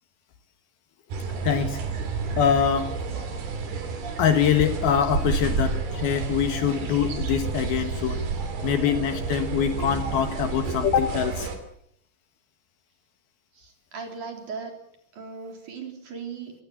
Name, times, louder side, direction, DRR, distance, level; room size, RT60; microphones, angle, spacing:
sound 1, 1.1-11.6, right 5 dB, 60° right, 5.0 m, -30 dB
voice 1, 1.4-1.8 2.4-3.0 4.2-8.2 8.6-11.5, left 8 dB, 65° left, 9 dB, 3.1 m, -24 dB
voice 2, 13.5-14.8 15.1-16.5, right 5 dB, 45° right, 4 dB, 4.8 m, -38 dB
24.5 x 18.0 x 7.3 m, 0.71 s
omnidirectional pair, 5.1 m